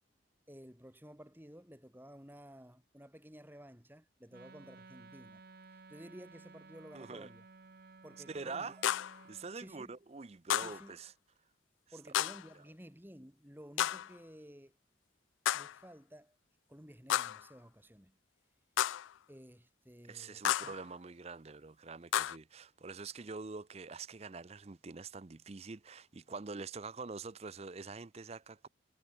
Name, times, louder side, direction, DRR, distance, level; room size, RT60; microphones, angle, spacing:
voice 1, 0.5-7.4 8.0-8.7 9.5-9.9 10.6-11.0 11.9-14.8 15.5-16.4 16.7-18.2 19.3-20.8, equal, 10° right, 4.3 m, -54 dB
Wind instrument woodwind instrument, 4.3-9.5, right 3 dB, 50° right, 0.9 m, -56 dB
voice 2, 6.9-7.3 8.3-8.8 9.3-11.1 12.5-12.6 20.1-28.7, right 4 dB, 30° right, 0.5 m, -45 dB
sound 1, 8.8-9.2 10.5-10.8 12.1-12.5 13.8-14.2 15.4-15.8 17.1-17.5 18.8-19.1 20.4-20.8 22.1-22.4, left 11 dB, 75° left, 0.3 m, -32 dB
head